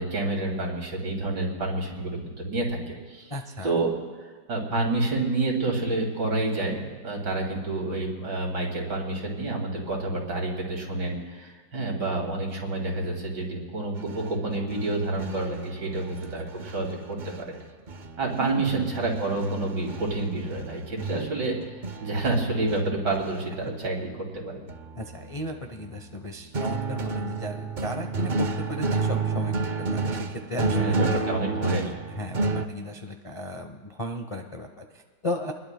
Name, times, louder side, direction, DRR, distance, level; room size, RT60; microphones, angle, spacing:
voice 1, 0.0-3.3 3.6-3.9 4.5-17.6 18.2-24.6 30.7-31.9, right 2 dB, 70° right, -1 dB, 3.4 m, -29 dB
voice 2, 3.3-3.7 16.3-16.4 18.4-18.9 23.6-23.9 24.9-29.5 29.9-31.0 32.1-35.5, left 1 dB, 30° left, 4 dB, 0.6 m, -35 dB
sound 1, 13.9-17.6 17.9-23.4 24.7-25.7 26.5-32.6, right 3 dB, 85° right, 0.4 m, -31 dB
27.0 x 21.0 x 2.2 m, 1.4 s
omnidirectional pair, 1.9 m